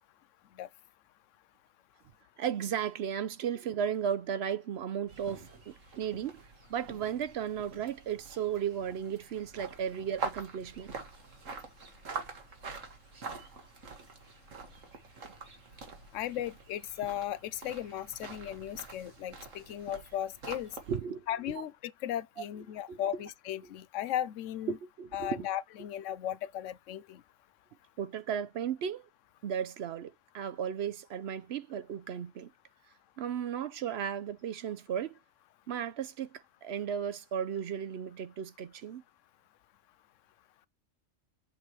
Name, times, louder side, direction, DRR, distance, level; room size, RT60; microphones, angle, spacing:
voice 1, 2.4-6.4 6.7-11.0 20.9-21.3 22.9-23.2 24.7-25.5 28.0-29.1 29.4-32.5 33.2-35.1 35.7-39.0, right 8 dB, 65° right, 0.8 m, -35 dB
sound 1, 5.1-21.0, right 4 dB, 85° right, 1.9 m, -45 dB
voice 2, 16.1-20.7 21.3-24.8 25.1-27.2, left 11 dB, 80° left, 0.9 m, -36 dB
7.5 x 3.2 x 4.2 m
omnidirectional pair, 1.3 m